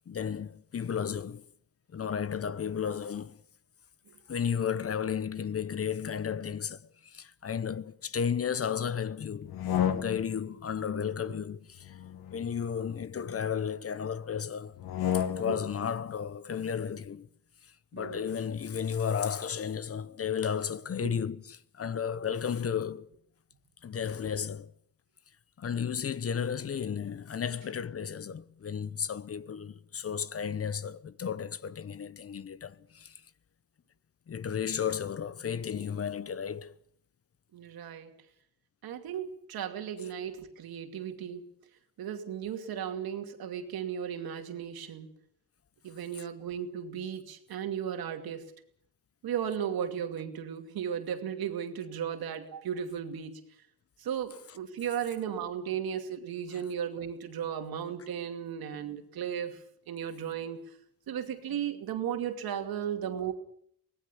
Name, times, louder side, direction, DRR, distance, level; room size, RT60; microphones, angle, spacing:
voice 1, 0.1-1.5 1.9-3.4 4.3-9.5 9.9-12.0 12.3-14.8 15.1-17.3 17.6-23.1 23.8-24.7 25.6-33.2 34.3-36.8 46.2-46.3 56.5-56.6, left 7 dB, 40° left, 0.9 m, -33 dB
sound 1, 9.4-10.5 11.8-13.4 14.7-15.7, left 9 dB, 85° left, 1.8 m, -33 dB
voice 2, 17.9-18.3 21.0-21.1 37.5-38.1 38.8-41.5 42.0-45.1 45.8-48.5 49.2-53.4 54.0-59.6 59.9-60.6 61.1-63.3, right 8 dB, 80° right, 2.7 m, -35 dB
24.5 x 18.5 x 7.1 m
cardioid pair, 105°, 36 cm